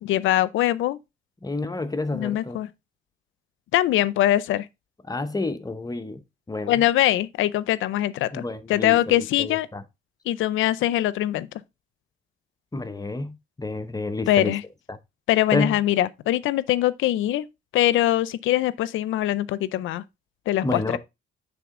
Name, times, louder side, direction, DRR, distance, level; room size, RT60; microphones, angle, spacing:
voice 1, 0.0-1.0 2.1-2.7 3.7-4.7 6.7-8.4 8.7-9.7 10.3-11.5 14.3-14.6 15.3-17.5 17.7-20.0 20.5-20.8, left 14 dB, 80° left, 0.5 m, -22 dB
voice 2, 1.4-2.6 5.0-6.2 6.5-6.8 8.3-9.8 12.7-14.6 14.9-15.0 15.5-15.8 20.6-21.0, left 2 dB, 20° left, 0.7 m, -29 dB
9.4 x 3.7 x 3.7 m
cardioid pair, 90°, 20 cm